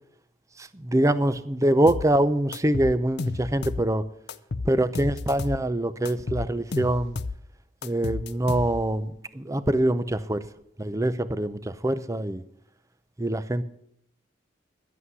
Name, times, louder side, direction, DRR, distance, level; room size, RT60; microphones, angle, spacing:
voice 1, 0.6-4.0 4.6-7.2 7.8-10.4 10.8-12.4 13.2-13.6, right 1 dB, 15° right, 14 dB, 0.5 m, -24 dB
sound 1, 1.9-2.1 2.5-3.9 4.3-5.6 6.1-7.4 7.8-9.0, left 3 dB, 55° left, 0.5 m, -32 dB
11.0 x 8.4 x 9.5 m, 0.73 s
head